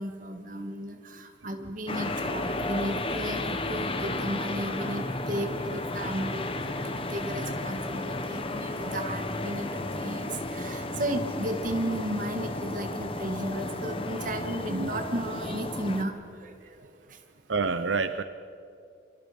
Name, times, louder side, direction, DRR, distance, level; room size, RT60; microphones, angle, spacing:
voice 1, 0.0-16.1 16.4-16.8 17.1-17.2, right 1 dB, 45° right, 4 dB, 2.3 m, -34 dB
sound 1, 1.9-16.0, left 2 dB, 30° left, 1.3 m, -33 dB
voice 2, 17.5-18.2, right 4 dB, 85° right, 10 dB, 0.8 m, -28 dB
28.5 x 26.0 x 5.4 m, 2.5 s
head